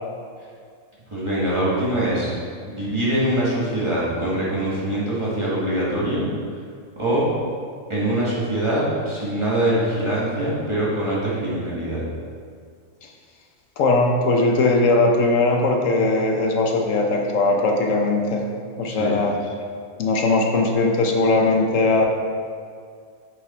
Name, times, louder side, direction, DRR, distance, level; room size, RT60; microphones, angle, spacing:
voice 1, 1.1-2.3 2.7-6.3 7.0-7.2 7.9-12.0 18.8-19.1, right 1 dB, 25° right, -8 dB, 2.1 m, -23 dB
voice 2, 13.8-18.5 18.8-19.4 20.0-22.1, left 2 dB, 80° left, 2 dB, 1.2 m, -19 dB
7.7 x 6.6 x 4.4 m, 2.1 s
omnidirectional pair, 1.3 m